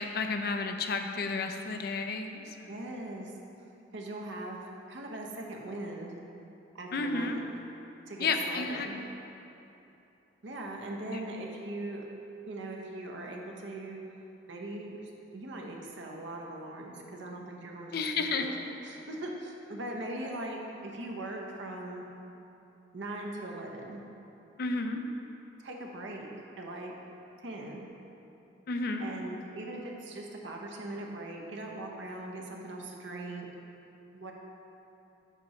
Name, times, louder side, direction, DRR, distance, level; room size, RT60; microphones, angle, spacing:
voice 1, 0.0-2.7 6.9-7.4 8.2-9.1 11.1-11.3 17.9-18.5 24.6-25.0 28.7-29.1, left 4 dB, 50° left, 5 dB, 0.4 m, -32 dB
voice 2, 2.7-3.3 3.9-4.6 4.9-6.2 6.7-7.4 8.1-9.0 10.4-12.0 12.5-14.0 14.5-18.5 18.8-22.0 22.9-24.0 25.6-26.3 26.6-26.9 27.4-27.9 29.0-33.5 34.1-34.3, right 1 dB, 70° right, 0 dB, 0.8 m, -40 dB
8.1 x 3.0 x 5.6 m, 2.8 s
head